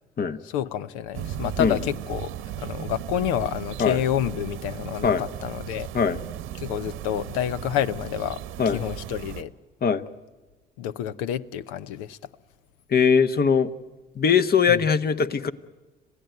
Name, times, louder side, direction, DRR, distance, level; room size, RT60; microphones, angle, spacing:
voice 1, 0.4-2.3 2.6-5.9 6.6-8.4 8.7-9.5 10.8-12.2 14.7-14.8, left 10 dB, 85° left, 0.7 m, -29 dB
sound 1, 1.1-9.4, right 11 dB, 80° right, 1.1 m, -36 dB
voice 2, 12.9-13.7 14.1-15.5, left 6 dB, 45° left, 1.2 m, -21 dB
27.0 x 16.0 x 9.2 m
hypercardioid pair, 55°, 21 cm